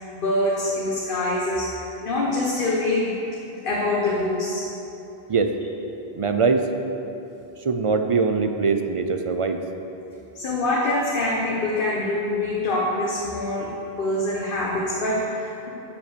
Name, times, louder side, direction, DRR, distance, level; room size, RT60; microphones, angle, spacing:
voice 1, 0.0-3.2 3.6-4.7 10.3-13.7 14.0-15.7, left 2 dB, 55° left, -4 dB, 1.2 m, -25 dB
voice 2, 6.2-6.7 7.6-9.6, right 4 dB, 45° right, 6 dB, 0.4 m, -22 dB
7.4 x 7.0 x 6.7 m, 2.9 s
omnidirectional pair, 1.1 m